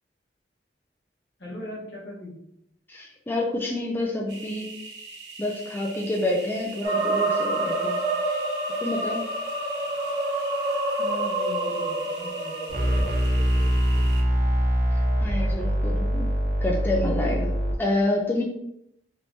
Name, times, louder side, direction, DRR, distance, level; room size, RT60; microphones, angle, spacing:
voice 1, 1.4-2.4 7.7-7.8 11.0-14.4, left 1 dB, 70° left, -2 dB, 1.0 m, -40 dB
voice 2, 2.9-4.7 5.4-8.0 8.8-9.2 15.2-16.3 16.6-17.5 17.8-18.4, left 1 dB, 10° left, -1 dB, 0.4 m, -27 dB
sound 1, 4.3-14.2, right 3 dB, 80° right, 1.2 m, -42 dB
sound 2, 6.8-13.2, right 2 dB, 25° right, 1.0 m, -27 dB
sound 3, 12.7-17.7, equal, 50° right, 0.6 m, -23 dB
3.5 x 3.0 x 2.6 m, 0.76 s
head